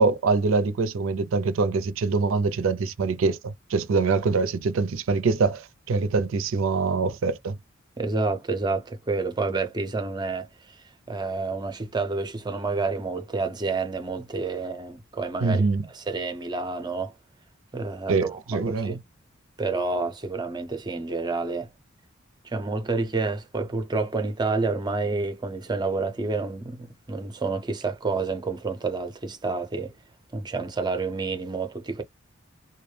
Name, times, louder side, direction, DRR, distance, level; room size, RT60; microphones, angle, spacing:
voice 1, 0.0-7.6 15.4-15.9 18.1-19.0, right 4 dB, 75° right, 0.4 m, -24 dB
voice 2, 8.0-10.5 11.1-17.1 17.7-19.0 19.6-21.7 22.4-29.9 30.3-32.0, right 3 dB, 20° right, 0.5 m, -29 dB
2.2 x 2.0 x 3.1 m
head